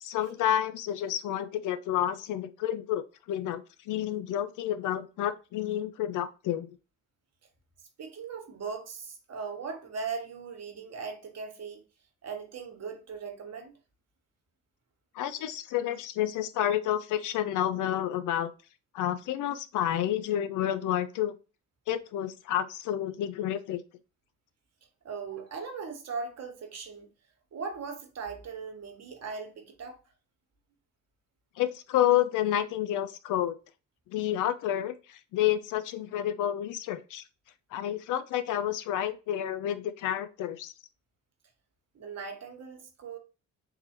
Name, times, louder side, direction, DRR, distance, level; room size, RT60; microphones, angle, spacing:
voice 1, 0.0-6.7 15.1-18.5 18.9-21.3 21.9-23.8 31.6-33.6 34.1-37.2 37.7-40.7, left 11 dB, 55° left, 0.5 m, -30 dB
voice 2, 8.0-11.8 12.2-13.7 25.0-27.1 27.5-30.0 41.9-43.2, right 5 dB, 45° right, 1.2 m, -39 dB
3.7 x 2.9 x 2.9 m
hypercardioid pair, 55°, 37 cm